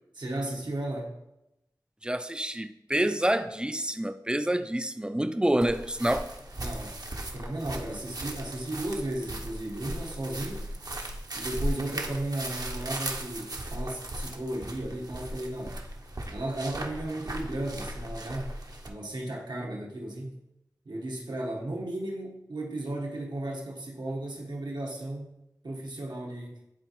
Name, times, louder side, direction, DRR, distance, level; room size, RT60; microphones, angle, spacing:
voice 1, 0.1-1.2 6.6-10.7 11.3-15.8 16.3-20.4 20.8-25.3 25.6-26.6, right 1 dB, 85° right, 1.3 m, -35 dB
voice 2, 2.0-6.3, right 1 dB, 10° right, 0.4 m, -27 dB
sound 1, 5.6-18.9, right 1 dB, 60° right, 0.8 m, -37 dB
10.5 x 4.0 x 3.1 m
wide cardioid pair, 65°, 7 cm